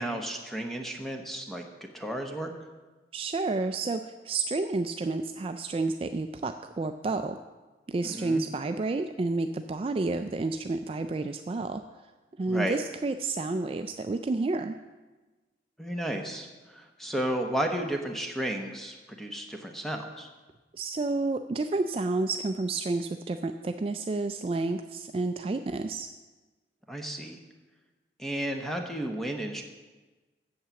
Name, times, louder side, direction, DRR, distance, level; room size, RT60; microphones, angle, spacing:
voice 1, 0.0-1.7 1.9-2.5 8.0-8.4 12.5-12.8 15.8-20.3 26.9-27.4 28.2-29.6, right 1 dB, ahead, 3 dB, 0.9 m, -33 dB
voice 2, 3.1-7.4 7.9-11.8 12.4-14.8 20.7-26.1, right 3 dB, 30° right, 8 dB, 0.3 m, -30 dB
8.6 x 7.5 x 7.0 m, 1.2 s
head